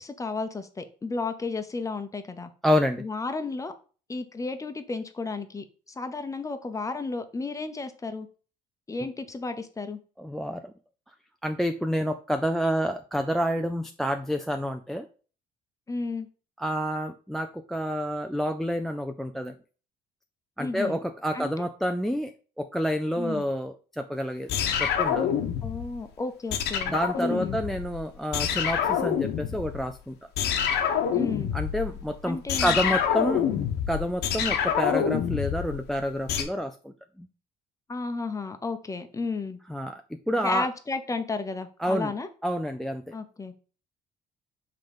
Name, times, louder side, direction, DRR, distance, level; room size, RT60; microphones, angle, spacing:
voice 1, 0.0-2.5 3.0-3.7 4.1-5.6 6.0-8.3 8.9-10.0 15.9-16.3 20.6-21.0 21.3-21.5 23.2-23.4 25.6-27.6 31.1-31.5 32.2-33.0 33.5-33.7 37.9-39.6 40.4-42.3 43.1-43.6, left 3 dB, 20° left, 9 dB, 0.8 m, -33 dB
voice 2, 2.6-3.0 10.2-10.6 11.4-15.1 16.6-19.5 20.6-24.5 24.8-25.3 26.9-30.1 31.5-33.4 33.9-36.9 37.2-37.3 39.7-40.0 40.3-40.7 41.8-42.1 42.4-43.0, equal, ahead, 7 dB, 0.4 m, -28 dB
sound 1, 24.5-26.0 26.5-28.0 28.3-29.9 30.4-36.4, left 8 dB, 80° left, 1.0 m, -27 dB
5.6 x 3.8 x 5.1 m, 0.38 s
cardioid pair, 110°, 17 cm